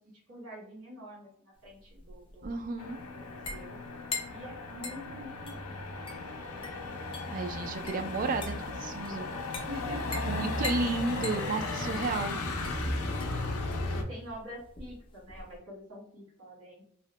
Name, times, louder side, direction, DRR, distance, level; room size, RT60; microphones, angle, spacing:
voice 1, 0.3-2.6 3.1-3.8 4.3-5.8 9.7-10.4 13.9-16.8, equal, 80° right, -4 dB, 1.4 m, -45 dB
sound 1, 1.6-15.6, left 3 dB, 25° left, 0.5 m, -44 dB
voice 2, 2.4-3.0 7.3-9.3 10.3-12.4, right 3 dB, 40° right, 6 dB, 0.3 m, -32 dB
Motor vehicle (road), 2.8-14.0, left 2 dB, 85° left, 0.5 m, -36 dB
2.7 x 2.1 x 3.0 m, 0.66 s
head